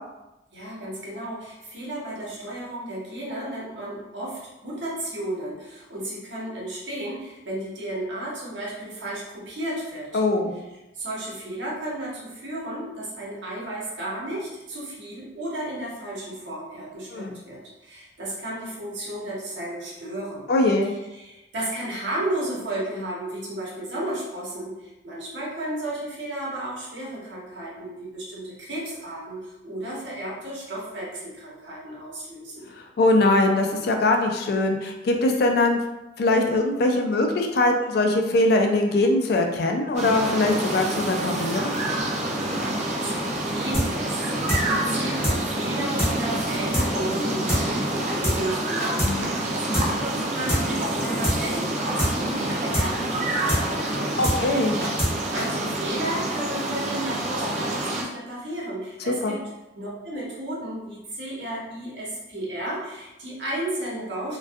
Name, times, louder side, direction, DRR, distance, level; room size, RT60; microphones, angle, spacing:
voice 1, 0.5-10.2 10.9-20.5 21.1-32.7 42.4-54.4 54.7-54.8 55.3-59.4 59.7-64.4, right 1 dB, 75° right, -5 dB, 0.8 m, -33 dB
voice 2, 10.1-10.5 17.1-17.4 20.5-20.9 33.0-35.8 36.2-41.8 49.0-49.3 54.2-54.8 59.1-59.3, left 2 dB, 55° left, 3 dB, 0.3 m, -22 dB
sound 1, 40.0-58.0, right 1 dB, 40° right, 0.3 m, -27 dB
sound 2, 43.7-43.9 44.1-44.2 44.5-44.6 44.9-45.0 45.2-45.4 45.6-45.7 46.0-46.1 46.4-46.5 46.7-46.9 47.1-47.2 47.5-47.6 47.9-48.0 48.2-48.4 48.6-49.1 49.4-49.5 49.7-49.9 50.1-50.2 50.5-50.6 50.9-51.0 51.2-51.4 51.6-51.7 52.0-52.1 52.4-52.5 52.7-52.9 53.1-53.2 53.5-53.6 53.9-54.0 54.2-54.4 54.6-55.1 55.4-55.5, equal, 15° left, 0.6 m, -24 dB
2.5 x 2.2 x 2.3 m, 0.98 s
head